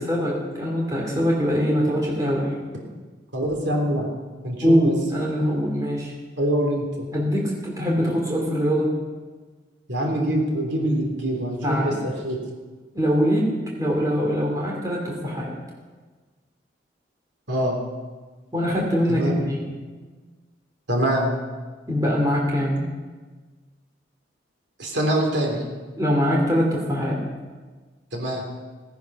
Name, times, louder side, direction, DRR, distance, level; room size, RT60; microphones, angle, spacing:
voice 1, 0.0-2.5 4.6-6.1 7.1-8.9 11.6-12.0 12.9-13.5 13.8-15.5 18.5-19.8 21.9-22.8 26.0-27.2, equal, 20° right, -2 dB, 3.0 m, -23 dB
voice 2, 3.3-4.1 4.4-4.9 6.4-7.1 9.9-11.9 12.2-12.4 17.5-17.8 19.1-19.4 20.9-21.3 24.8-25.6 28.1-28.4, right 1 dB, 70° right, 0 dB, 3.1 m, -24 dB
17.5 x 10.5 x 5.9 m, 1.4 s
head